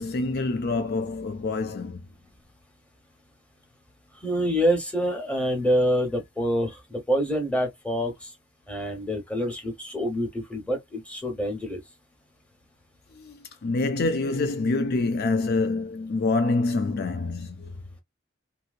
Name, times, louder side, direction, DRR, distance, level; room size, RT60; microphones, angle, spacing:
voice 1, 0.0-2.1 13.2-17.7, left 3 dB, 50° left, 0.4 m, -26 dB
voice 2, 4.2-8.3 8.7-11.8, equal, 5° left, 1.1 m, -26 dB
3.0 x 2.8 x 2.4 m
head